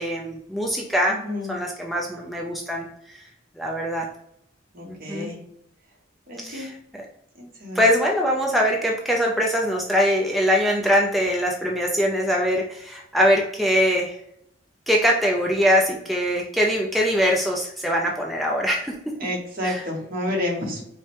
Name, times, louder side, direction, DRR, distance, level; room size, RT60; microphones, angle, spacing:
voice 1, 0.0-1.2 1.5-3.2 3.6-4.1 4.8-5.3 6.4-6.7 7.8-14.2 14.9-18.9 19.6-19.8, equal, ahead, -2 dB, 0.4 m, -22 dB
voice 2, 1.1-1.6 4.7-5.4 6.3-6.7 7.3-7.8 19.2-20.8, left 1 dB, 50° right, -1 dB, 1.1 m, -30 dB
4.8 x 2.1 x 2.9 m, 0.75 s
head